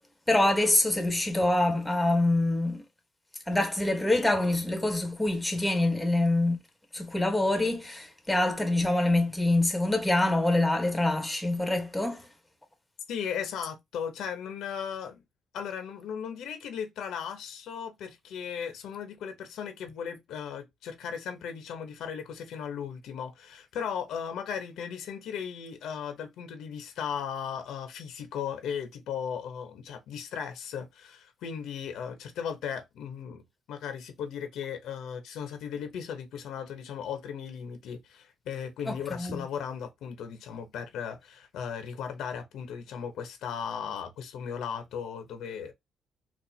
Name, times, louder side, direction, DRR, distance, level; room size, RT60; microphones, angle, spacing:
voice 1, 0.3-2.8 3.5-6.6 6.9-12.2 38.9-39.4, left 2 dB, 10° left, 1.1 m, -25 dB
voice 2, 13.1-15.2 15.5-33.4 33.7-45.7, left 7 dB, 80° left, 0.8 m, -37 dB
4.2 x 2.5 x 2.7 m
cardioid pair, 90°, 0 cm